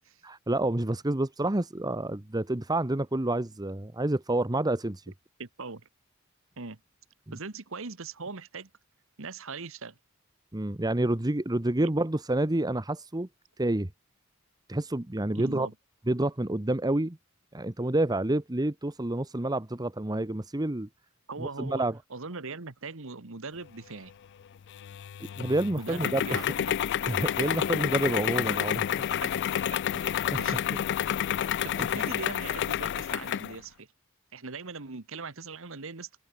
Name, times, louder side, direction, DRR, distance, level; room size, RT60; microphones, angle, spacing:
voice 1, 0.2-5.1 7.3-7.4 10.5-13.3 13.6-13.9 14.7-15.7 16.1-17.2 17.5-20.9 21.4-22.0 25.4-26.5 27.1-28.9 29.9-30.6 31.4-31.9, right 1 dB, 20° right, 1.0 m, -29 dB
voice 2, 5.4-5.9 6.6-6.8 7.3-8.7 9.2-10.0 11.8-11.9 15.3-15.7 21.3-21.8 22.1-24.1 25.8-26.7 29.9-30.9 31.6-33.9 34.3-36.2, right 4 dB, 65° right, 1.5 m, -40 dB
sound 1, 24.7-33.6, left 10 dB, 55° left, 0.3 m, -29 dB
open air
head